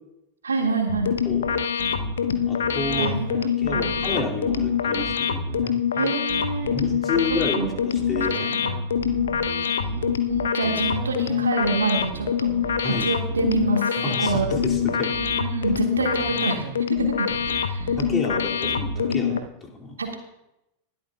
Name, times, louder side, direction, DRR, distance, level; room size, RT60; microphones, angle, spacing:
voice 1, 0.4-1.1 2.9-4.0 5.9-6.7 7.5-7.7 8.3-8.8 9.6-12.5 12.8-14.5 15.4-16.7 17.0-17.3 17.6-18.0 20.0-20.2, right 3 dB, 75° right, 2 dB, 2.0 m, -27 dB
sound 1, 0.9-19.4, left 7 dB, 65° left, 0.8 m, -25 dB
sound 2, 0.9-19.5, right 13 dB, 50° right, 0.4 m, -37 dB
voice 2, 2.5-3.2 3.6-5.4 6.7-8.6 9.0-9.2 12.8-13.1 14.0-15.1 18.0-20.0, left 3 dB, 20° left, -1 dB, 2.5 m, -30 dB
19.5 x 12.5 x 2.3 m, 0.88 s
figure-of-eight pair, 90°, 0 cm